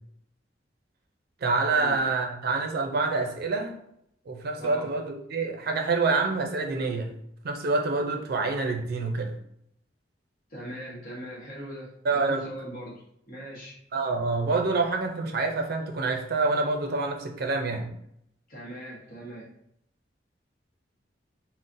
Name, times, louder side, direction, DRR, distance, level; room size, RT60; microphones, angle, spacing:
voice 1, 1.4-3.7 4.3-7.1 7.4-9.3 12.0-12.5 13.9-17.9, right 3 dB, 60° right, 4 dB, 0.4 m, -27 dB
voice 2, 10.5-13.8 18.5-19.5, equal, 50° left, -4 dB, 1.0 m, -40 dB
3.8 x 2.0 x 2.5 m, 0.74 s
head